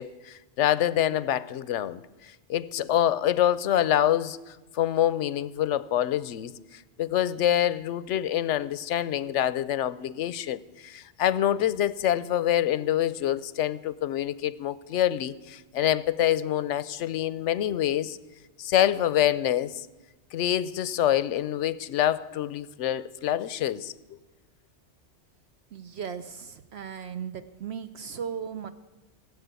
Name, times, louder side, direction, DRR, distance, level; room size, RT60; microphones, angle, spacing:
voice 1, 0.0-18.2 18.6-19.9 20.3-23.9, left 11 dB, 85° left, 18 dB, 1.0 m, -26 dB
voice 2, 25.7-28.7, right 7 dB, 65° right, 10 dB, 0.9 m, -37 dB
17.5 x 8.4 x 8.2 m, 1.2 s
omnidirectional pair, 1.2 m